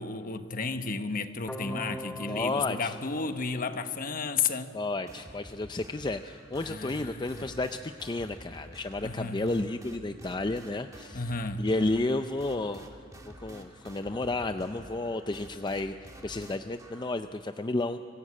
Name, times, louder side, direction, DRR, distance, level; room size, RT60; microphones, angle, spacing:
voice 1, 0.0-4.7 6.6-7.5 9.0-9.4 11.1-11.6, left 4 dB, 50° left, 9 dB, 1.1 m, -33 dB
sound 1, 1.5-4.4, equal, 5° left, 1.0 m, -42 dB
voice 2, 2.3-3.0 4.7-11.2 11.6-13.0 13.4-15.9 16.2-18.0, left 2 dB, 25° left, 8 dB, 0.5 m, -32 dB
sound 2, 5.1-17.1, right 1 dB, 20° right, 1.9 m, -50 dB
24.0 x 16.0 x 8.7 m, 2.2 s
head